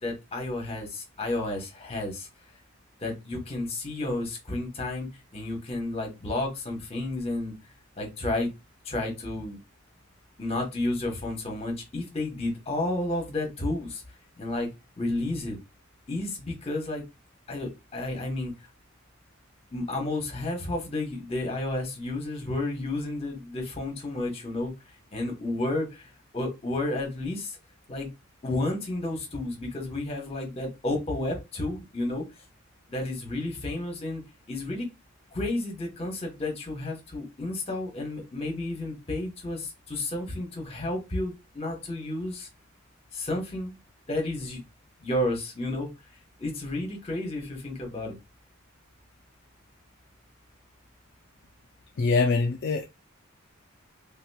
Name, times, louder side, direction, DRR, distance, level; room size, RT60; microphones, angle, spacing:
voice 1, 0.0-2.3 3.0-5.1 5.3-7.5 8.0-8.5 8.8-9.6 10.4-14.0 14.4-14.7 15.0-15.6 16.1-17.0 17.5-18.5 19.7-24.7 25.1-26.0 26.3-27.6 27.9-28.1 28.4-32.2 32.9-34.2 34.5-34.9 35.3-42.5 43.1-43.8 44.1-44.6 45.0-45.9 46.4-48.2, left 2 dB, 30° left, 1.1 m, -31 dB
voice 2, 52.0-52.9, left 4 dB, 55° left, 0.4 m, -23 dB
3.6 x 2.9 x 2.2 m
head